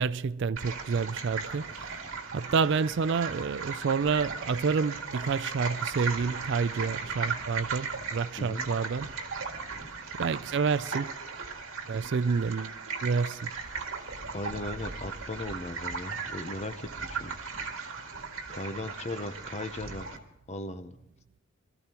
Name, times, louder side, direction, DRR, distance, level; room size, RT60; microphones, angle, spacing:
voice 1, 0.0-1.9 2.3-9.1 10.2-11.1 11.9-12.7 13.0-13.5, right 5 dB, 60° right, 0.4 m, -29 dB
sound 1, 0.6-20.2, right 5 dB, 75° right, 1.9 m, -37 dB
voice 2, 14.3-17.4 18.5-20.1 20.5-20.9, left 2 dB, 30° left, 0.7 m, -37 dB
22.0 x 14.0 x 3.0 m
head